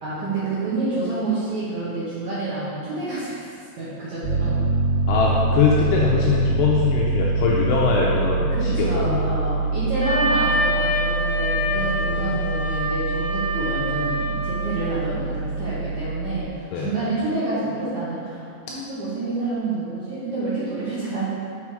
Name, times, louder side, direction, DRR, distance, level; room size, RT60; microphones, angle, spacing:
voice 1, 0.0-3.4 3.8-4.6 8.5-21.3, right 2 dB, 90° right, -11 dB, 1.6 m, -28 dB
Piano, 4.2-16.4, right 3 dB, 70° right, 3.2 m, -25 dB
voice 2, 5.1-9.2 11.8-12.4 16.7-16.9, left 5 dB, 85° left, -3 dB, 2.4 m, -22 dB
Wind instrument woodwind instrument, 10.0-14.9, left 1 dB, 50° right, 2.4 m, -26 dB
6.1 x 6.0 x 4.7 m, 2.4 s
omnidirectional pair, 5.4 m